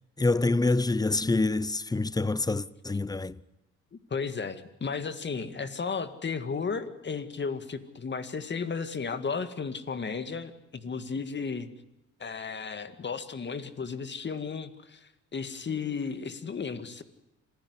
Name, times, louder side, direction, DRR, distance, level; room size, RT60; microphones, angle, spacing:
voice 1, 0.2-3.4, left 3 dB, 15° left, 0.8 m, -26 dB
voice 2, 3.9-11.7 12.2-17.0, left 5 dB, 35° left, 2.1 m, -34 dB
26.5 x 16.0 x 9.7 m
cardioid pair, 90°, 30 cm